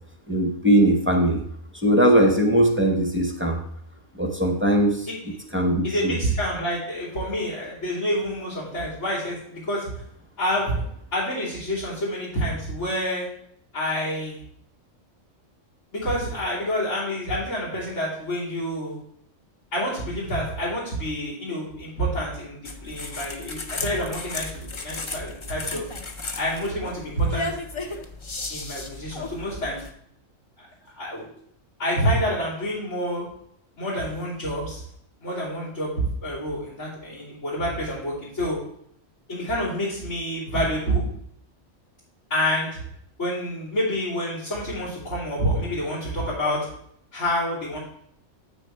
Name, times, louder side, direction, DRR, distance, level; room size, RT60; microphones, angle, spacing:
voice 1, 0.3-1.4 1.7-3.6 4.1-5.1 5.5-6.1, right 1 dB, 10° right, 3 dB, 0.6 m, -20 dB
voice 2, 5.8-9.9 10.4-10.8 11.1-13.3 13.7-14.4 15.9-19.0 19.7-25.8 26.4-27.5 28.5-29.8 30.6-30.7 31.0-31.3 31.8-33.3 33.8-34.8 35.2-35.9 36.2-38.6 39.3-41.1 42.3-42.8 43.2-46.6 47.1-47.8, equal, 75° left, -13 dB, 3.4 m, -28 dB
sound 1, 22.6-29.9, left 3 dB, 35° left, 0.5 m, -35 dB
8.0 x 6.4 x 3.4 m, 0.68 s
omnidirectional pair, 1.3 m